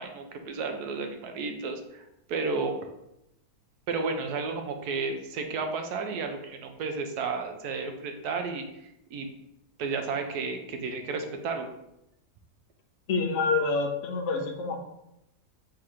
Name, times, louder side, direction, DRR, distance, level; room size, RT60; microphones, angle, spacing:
voice 1, 0.0-2.0 2.3-2.8 3.9-8.6 9.1-9.3 9.8-11.7, right 4 dB, 80° right, 5 dB, 1.2 m, -32 dB
voice 2, 13.1-14.8, left 4 dB, 60° left, 3 dB, 0.9 m, -27 dB
3.7 x 2.8 x 4.8 m, 0.84 s
omnidirectional pair, 1.7 m